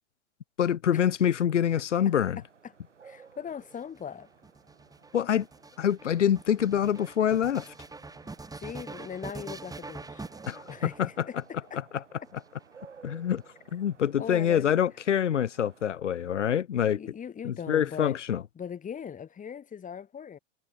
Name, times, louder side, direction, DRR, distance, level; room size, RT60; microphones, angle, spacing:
voice 1, 0.6-2.4 5.1-5.5 5.8-7.7 10.5-10.6 11.0-11.1 13.0-13.4 13.7-17.0 17.4-18.4, left 9 dB, 85° left, 1.1 m, -25 dB
sound 1, 2.1-15.9, right 6 dB, 90° right, 8.0 m, -56 dB
voice 2, 3.0-4.3 8.6-10.2 10.7-11.8 14.2-14.8 16.9-18.2 18.6-20.4, left 7 dB, 20° left, 3.5 m, -40 dB
sound 2, 3.5-11.4 12.2-13.1, right 3 dB, 10° right, 5.3 m, -44 dB
hypercardioid pair, 100°, 35 cm